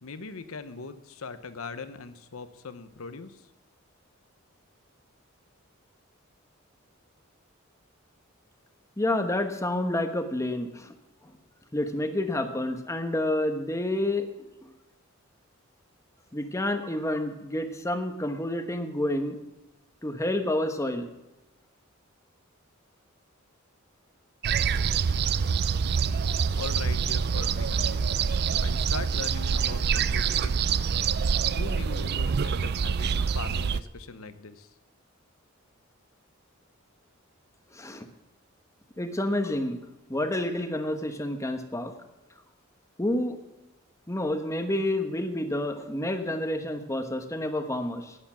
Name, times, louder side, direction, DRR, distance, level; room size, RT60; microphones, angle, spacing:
voice 1, 0.0-3.5 26.6-28.2 28.6-30.9 31.6-34.7, left 4 dB, 80° left, 11 dB, 0.9 m, -40 dB
voice 2, 9.0-10.9 11.2-11.3 11.7-14.3 14.6-14.7 16.3-19.4 20.0-21.1 37.7-38.1 39.0-39.8 40.1-41.9 43.0-43.4 44.1-48.2, left 1 dB, 15° left, 7 dB, 1.1 m, -29 dB
sound 1, 24.4-33.8, right 6 dB, 50° right, 0.4 m, -26 dB
11.0 x 9.8 x 7.3 m, 1.0 s
head